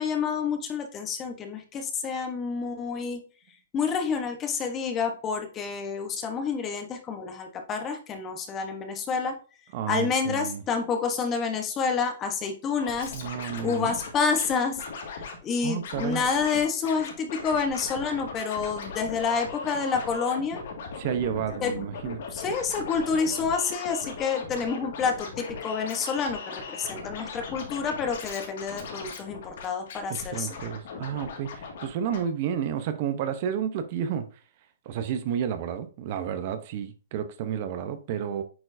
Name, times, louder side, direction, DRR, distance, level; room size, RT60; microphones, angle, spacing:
voice 1, 0.0-3.2 3.7-9.3 9.9-13.1 13.6-14.8 15.4-20.6 21.6-21.7 22.3-30.5, left 5 dB, 20° left, 1.0 m, -28 dB
voice 2, 9.7-10.6 13.1-14.0 15.6-16.2 21.0-22.2 30.1-34.3 34.9-38.4, right 8 dB, 40° right, 0.8 m, -31 dB
Scratching (performance technique), 12.8-14.5 14.8-15.4 15.8-16.6 16.8-32.2, left 4 dB, 60° left, 2.0 m, -38 dB
8.6 x 4.4 x 2.6 m
hypercardioid pair, 160°, 0 cm